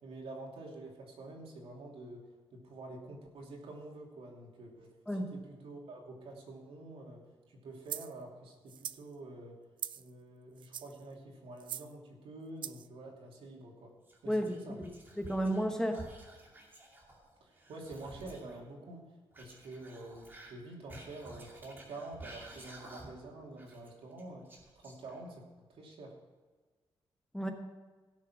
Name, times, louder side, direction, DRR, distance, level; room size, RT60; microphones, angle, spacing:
voice 1, 0.0-2.2 2.5-9.6 9.9-13.9 14.2-14.8 17.4-19.0 19.4-24.5 24.7-25.4 25.7-26.1, right 2 dB, 85° right, -1 dB, 2.8 m, -48 dB
sound 1, 7.9-8.1 8.7-9.0 9.8-10.1 10.6-11.0 11.6-11.9 12.6-12.9, right 9 dB, 60° right, 0.4 m, -41 dB
Whispering, 14.0-15.6 15.9-18.6 19.3-23.3 23.6-25.4, right 2 dB, 20° right, 2.4 m, -52 dB
voice 2, 15.2-16.1 27.3-27.5, equal, 5° left, 4 dB, 1.0 m, -32 dB
16.5 x 6.6 x 6.1 m, 1.3 s
wide cardioid pair, 160°, 9 cm